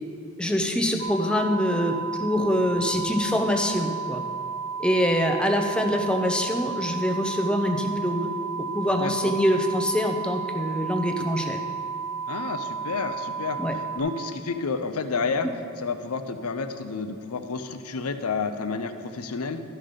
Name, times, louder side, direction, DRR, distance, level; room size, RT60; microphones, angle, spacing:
voice 1, 0.4-4.2 4.8-8.3 8.7-11.6 13.6-13.7, equal, 5° left, 3 dB, 0.6 m, -24 dB
sound 1, 1.0-14.0, right 5 dB, 75° right, 0.9 m, -33 dB
voice 2, 8.9-9.3 12.3-13.6 13.9-15.5 15.8-19.6, left 4 dB, 75° left, 9 dB, 0.6 m, -30 dB
12.5 x 5.6 x 5.1 m, 2.5 s
head